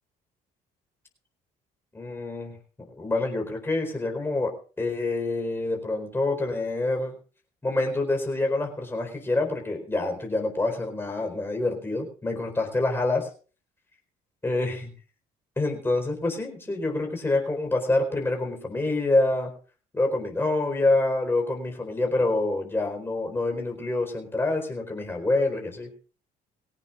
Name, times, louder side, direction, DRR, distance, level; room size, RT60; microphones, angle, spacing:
voice 1, 1.9-7.2 7.6-13.3 14.4-14.9 15.6-19.5 19.9-25.9, left 2 dB, 15° left, 2 dB, 4.4 m, -26 dB
21.0 x 17.5 x 2.5 m, 0.38 s
cardioid pair, 110°, 17 cm